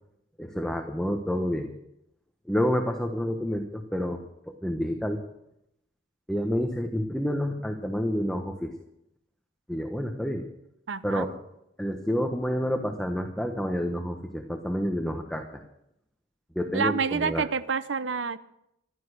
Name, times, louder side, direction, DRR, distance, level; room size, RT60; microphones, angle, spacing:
voice 1, 0.4-1.7 2.5-4.2 4.5-5.2 6.3-8.7 9.7-10.4 11.0-11.3 11.8-15.4 16.5-17.4, equal, 5° left, 4 dB, 1.2 m, -29 dB
voice 2, 10.9-11.3 16.7-18.4, right 5 dB, 70° right, 13 dB, 0.7 m, -28 dB
15.0 x 12.0 x 6.6 m, 0.81 s
head